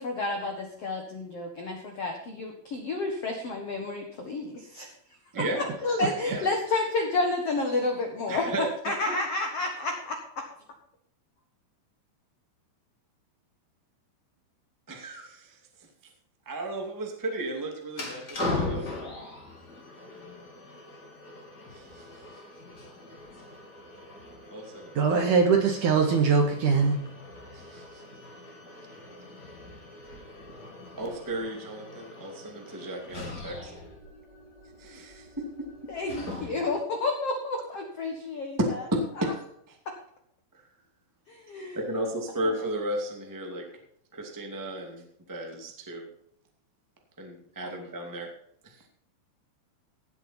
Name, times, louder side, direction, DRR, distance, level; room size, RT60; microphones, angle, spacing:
voice 1, 0.0-4.9 5.5-8.5 8.8-10.4 35.9-38.6 39.8-39.9 41.3-41.8 47.6-47.7, left 3 dB, 65° left, 3 dB, 1.5 m, -30 dB
voice 2, 5.3-5.7 6.0-6.6 8.3-9.1 14.9-15.9 16.4-18.9 21.7-22.4 24.5-25.0 27.5-28.0 28.4-28.5 31.0-33.7 34.8-35.5 38.6-39.8 41.7-43.7 44.1-46.1 47.2-48.3 48.6-48.9, right 1 dB, 10° right, 1 dB, 0.9 m, -34 dB
sound 1, 17.9-36.8, left 2 dB, 25° left, 3.0 m, -40 dB
voice 3, 25.0-27.0, right 5 dB, 60° right, 3 dB, 2.4 m, -22 dB
17.5 x 7.8 x 4.4 m, 0.71 s
omnidirectional pair, 5.1 m